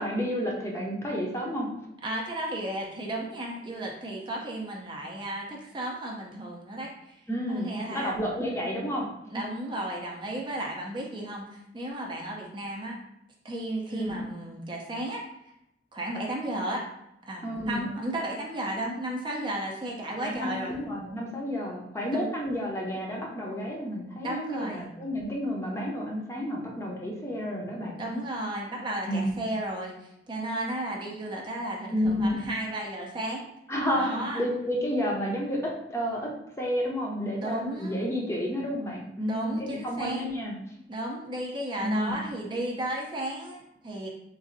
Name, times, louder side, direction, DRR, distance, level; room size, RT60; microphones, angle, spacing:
voice 1, 0.0-1.7 7.3-9.1 9.3-9.5 13.9-14.2 17.4-17.9 20.2-28.0 29.1-29.3 31.9-32.5 33.7-36.3 36.6-40.5 41.8-42.3, equal, 15° left, -2 dB, 0.6 m, -30 dB
voice 2, 2.0-8.2 9.3-13.0 13.4-15.2 15.9-16.9 17.3-20.7 22.1-22.3 24.2-24.9 28.0-33.5 33.9-34.4 37.4-37.9 39.3-40.2 40.9-44.1, right 1 dB, 30° right, -1 dB, 0.5 m, -34 dB
3.9 x 2.5 x 2.5 m, 0.82 s
head